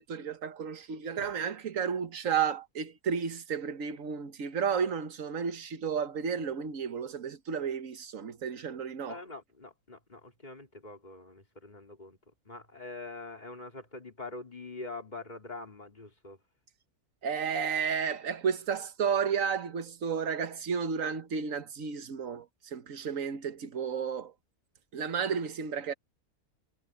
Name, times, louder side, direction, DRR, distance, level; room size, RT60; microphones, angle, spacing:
voice 1, 0.0-9.2 17.2-24.3 24.9-25.9, right 6 dB, 65° right, 1.5 m, -32 dB
voice 2, 9.1-12.2 12.5-16.4, left 3 dB, 30° left, 3.8 m, -44 dB
omnidirectional pair, 1.5 m